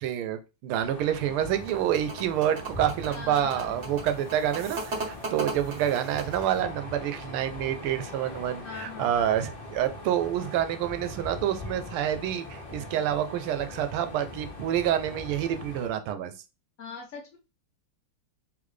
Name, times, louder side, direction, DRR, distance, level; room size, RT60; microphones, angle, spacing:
voice 1, 0.0-16.3, right 10 dB, 85° right, 9 dB, 1.5 m, -28 dB
sound 1, 0.8-15.9, left 2 dB, 35° left, 1.0 m, -42 dB
sound 2, 1.4-6.6, right 2 dB, 45° right, 1.0 m, -37 dB
voice 2, 3.1-3.8 8.6-9.2 16.8-17.4, left 5 dB, 70° left, 1 dB, 0.7 m, -41 dB
3.8 x 3.7 x 3.2 m, 0.29 s
omnidirectional pair, 2.3 m